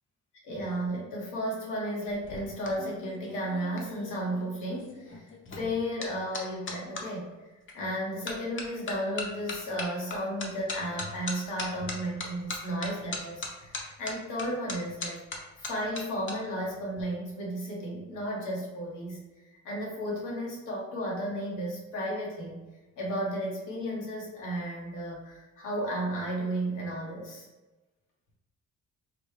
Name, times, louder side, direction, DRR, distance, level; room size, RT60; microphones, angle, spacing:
voice 1, 0.4-15.2 15.6-19.2 19.5-22.6 23.0-27.5, equal, 90° left, -3 dB, 1.2 m, -34 dB
sound 1, 2.1-7.1 7.7-8.0 8.3-16.3 16.6-17.0, left 3 dB, 40° left, 0.7 m, -39 dB
4.0 x 2.2 x 3.2 m, 1.2 s
cardioid pair, 90°, 30 cm